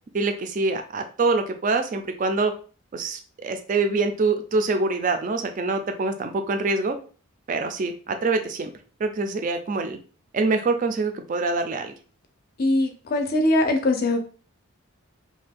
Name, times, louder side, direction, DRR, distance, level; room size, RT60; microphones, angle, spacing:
voice 1, 0.1-2.5 2.9-7.0 7.5-8.7 9.0-10.0 10.3-11.9, right 3 dB, 35° right, 6 dB, 0.3 m, -25 dB
voice 2, 12.6-14.2, left 1 dB, 45° left, 5 dB, 0.5 m, -21 dB
2.5 x 2.2 x 3.4 m, 0.39 s
head